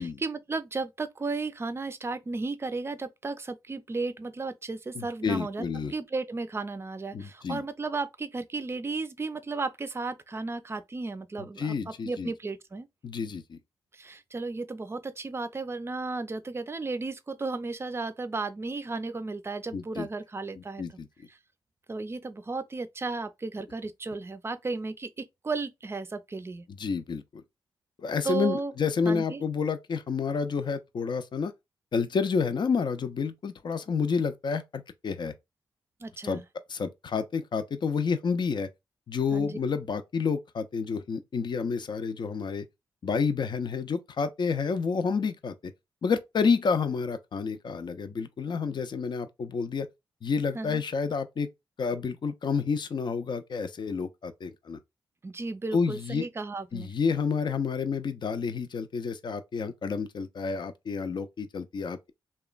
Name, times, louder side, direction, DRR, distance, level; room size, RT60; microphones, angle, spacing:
voice 1, 0.0-5.6 5.9-12.9 13.9-20.8 21.9-26.7 28.2-28.7 29.0-29.4 36.0-36.4 39.3-39.6 50.5-50.8 55.2-56.9, right 3 dB, 25° right, 0.4 m, -34 dB
voice 2, 4.9-5.9 7.1-7.6 11.4-12.3 13.0-13.6 19.7-20.1 20.6-21.1 26.7-27.4 28.0-31.5 31.9-35.3 36.2-36.4 36.7-38.7 39.1-42.7 43.0-45.7 46.0-49.9 50.2-51.5 51.8-54.8 55.7-56.3 56.7-62.1, left 5 dB, 55° left, 0.5 m, -29 dB
2.9 x 2.2 x 2.4 m
cardioid pair, 55°, 9 cm